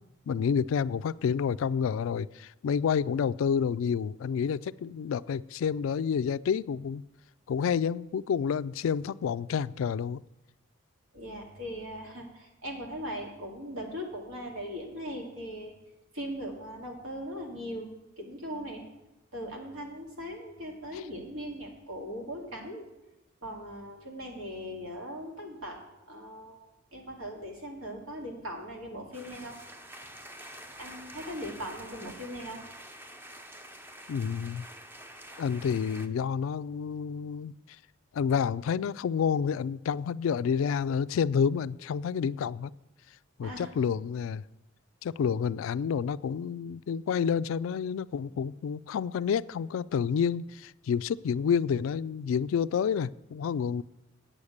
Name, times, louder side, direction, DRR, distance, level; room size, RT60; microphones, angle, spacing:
voice 1, 0.3-7.0 7.5-10.2 20.9-21.0 34.1-34.7 35.4-37.5 38.1-42.7 43.4-44.4 45.0-53.8, left 7 dB, 75° left, 18 dB, 0.3 m, -29 dB
voice 2, 11.1-15.7 16.1-17.9 18.2-18.8 19.3-22.8 23.4-25.8 26.1-29.6 30.8-32.6 43.4-43.7, equal, 85° right, 1 dB, 2.4 m, -39 dB
sound 1, 29.1-36.1, equal, 10° right, 0.6 m, -47 dB
8.8 x 6.5 x 8.6 m, 0.93 s
head